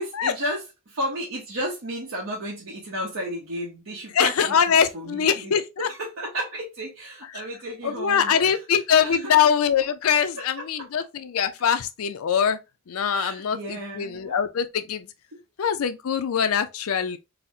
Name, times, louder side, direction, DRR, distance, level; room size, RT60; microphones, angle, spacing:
voice 1, 0.0-5.5 5.8-9.3 13.1-14.4 15.3-15.4, equal, 70° right, 0.8 m, -33 dB
voice 2, 4.1-5.9 7.3-7.4 7.8-12.6 12.9-15.1 15.6-17.2, left 7 dB, 80° left, 0.5 m, -23 dB
4.0 x 2.1 x 2.7 m
head